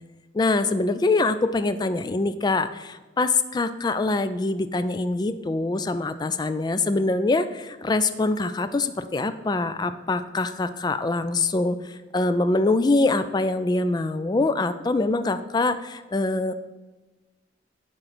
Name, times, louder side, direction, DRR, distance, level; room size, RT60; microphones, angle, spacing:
voice 1, 0.3-16.5, left 3 dB, 20° left, 12 dB, 0.3 m, -24 dB
9.8 x 3.8 x 6.0 m, 1.2 s
head